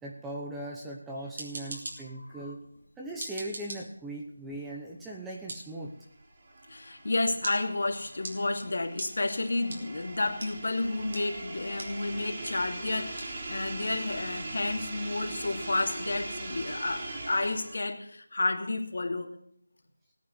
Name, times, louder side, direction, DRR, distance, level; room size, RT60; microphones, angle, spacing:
voice 1, 0.0-2.6 3.0-5.9, right 1 dB, 5° right, -3 dB, 1.0 m, -39 dB
sound 1, 1.1-17.9, right 2 dB, 45° right, 4.5 m, -48 dB
voice 2, 2.1-2.5 6.7-19.3, left 2 dB, 55° left, 4 dB, 2.6 m, -31 dB
sound 2, 6.0-17.9, right 2 dB, 30° right, 3.4 m, -41 dB
18.0 x 9.4 x 8.0 m, 0.70 s
figure-of-eight pair, 175°, 0 cm